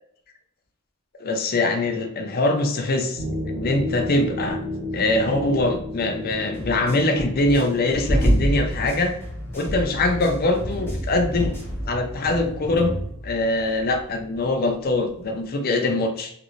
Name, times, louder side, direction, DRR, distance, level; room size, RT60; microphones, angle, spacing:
voice 1, 1.2-4.6 4.9-9.1 9.5-11.5 11.9-12.9 13.2-16.3, left 2 dB, 45° left, 4 dB, 0.5 m, -23 dB
sound 1, 3.1-14.7 14.9-15.2, equal, 15° right, 1.0 m, -29 dB
sound 2, 6.5-9.8 10.0-11.9, left 1 dB, 10° left, 0.7 m, -38 dB
2.9 x 2.6 x 3.0 m, 0.69 s
head